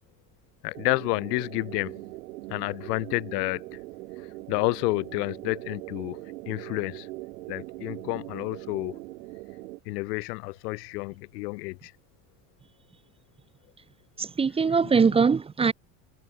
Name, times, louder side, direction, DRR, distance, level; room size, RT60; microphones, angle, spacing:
voice 1, 0.6-1.9 2.5-3.6 4.5-7.1 7.5-9.0 9.8-11.9 14.8-15.2, left 24 dB, 85° left, 1.5 m, -30 dB
sound 1, 0.7-9.8, right 20 dB, 85° right, 3.9 m, -41 dB
voice 2, 14.2-15.7, right 5 dB, 15° right, 0.4 m, -22 dB
supercardioid pair, 90°, 46 cm